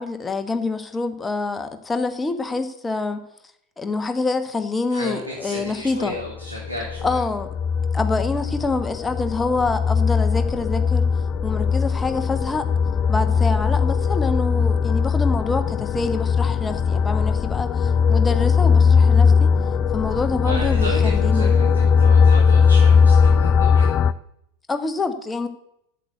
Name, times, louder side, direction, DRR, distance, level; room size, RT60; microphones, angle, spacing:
voice 1, 0.0-3.2 3.8-6.2 7.0-7.6 7.9-11.1 11.4-12.7 13.1-19.5 19.9-21.5 24.7-25.5, left 3 dB, 10° left, 8 dB, 1.2 m, -26 dB
voice 2, 4.9-7.2 20.4-23.9, left 1 dB, 90° right, -3 dB, 2.7 m, -33 dB
sound 1, 6.4-24.1, left 6 dB, 30° left, 0.4 m, -19 dB
8.4 x 8.0 x 7.9 m, 0.76 s
figure-of-eight pair, 90°, 0 cm